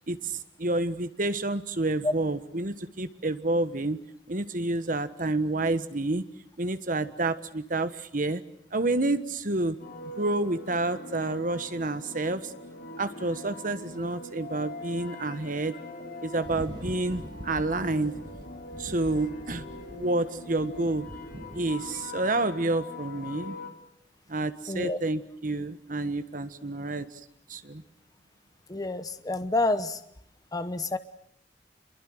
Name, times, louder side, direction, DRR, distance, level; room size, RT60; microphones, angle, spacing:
voice 1, 0.1-4.0 4.3-6.2 6.6-8.4 8.7-9.8 10.2-12.5 13.0-15.7 16.2-18.1 18.8-19.7 19.9-21.0 21.5-23.6 24.3-27.2 27.5-27.8, right 2 dB, 50° right, 11 dB, 1.4 m, -29 dB
sound 1, 9.8-23.7, left 2 dB, 55° left, 4.1 m, -42 dB
sound 2, 16.4-22.1, equal, 25° right, 1.6 m, -44 dB
voice 2, 24.7-25.0 28.7-30.0 30.5-31.0, left 2 dB, 20° left, 11 dB, 0.9 m, -28 dB
27.0 x 23.0 x 7.8 m, 0.71 s
head